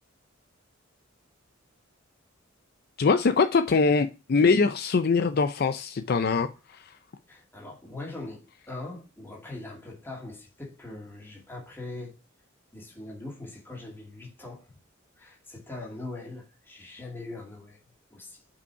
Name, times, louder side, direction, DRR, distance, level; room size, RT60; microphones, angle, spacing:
voice 1, 3.0-7.0, left 4 dB, 50° left, 0.4 m, -23 dB
voice 2, 7.3-12.2 12.7-14.7 15.2-17.8 18.1-18.4, left 2 dB, 10° left, 2.1 m, -41 dB
5.6 x 5.2 x 4.6 m
head